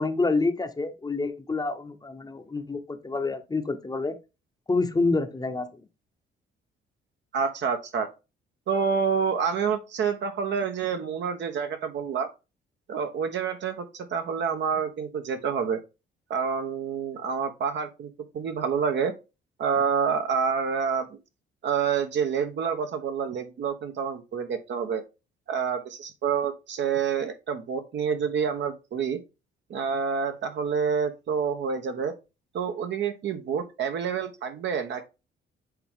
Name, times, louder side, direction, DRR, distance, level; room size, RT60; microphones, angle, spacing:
voice 1, 0.0-4.2 4.7-5.7, left 3 dB, 20° left, 0.9 m, -27 dB
voice 2, 7.3-8.1 8.7-12.3 12.9-15.8 16.3-19.1 19.6-21.2 21.6-25.0 25.5-29.2 29.7-32.1 32.5-35.0, right 6 dB, 65° right, 1.2 m, -28 dB
7.9 x 3.7 x 3.7 m
cardioid pair, 90°, 20 cm